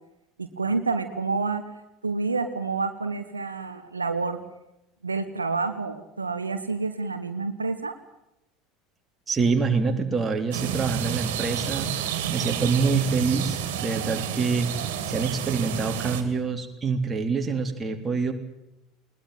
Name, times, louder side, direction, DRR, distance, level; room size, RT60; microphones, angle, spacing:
voice 1, 0.4-1.6 2.0-4.4 5.0-7.9, right 4 dB, 85° right, 9 dB, 1.2 m, -28 dB
voice 2, 9.3-11.9 12.3-14.7 15.1-18.3, right 4 dB, 20° right, 4 dB, 3.5 m, -26 dB
sound 1, 10.5-16.2, right 9 dB, 65° right, 3.1 m, -30 dB
21.0 x 20.0 x 9.2 m, 0.90 s
figure-of-eight pair, 70°, 0 cm